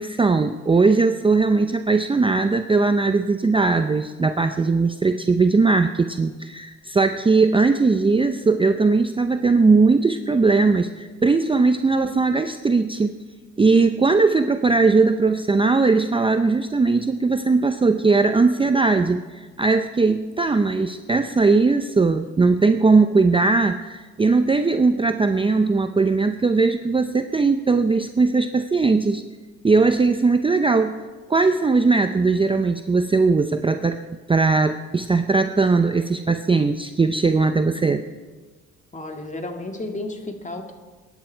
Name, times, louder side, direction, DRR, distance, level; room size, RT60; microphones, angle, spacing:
voice 1, 0.0-13.2 13.6-29.2 29.6-31.0 31.3-34.0 34.3-38.0, right 3 dB, 15° right, 8 dB, 0.5 m, -19 dB
voice 2, 38.9-40.7, left 2 dB, 25° left, 4 dB, 1.9 m, -32 dB
22.0 x 10.0 x 4.5 m, 1.4 s
cardioid pair, 90°, 30 cm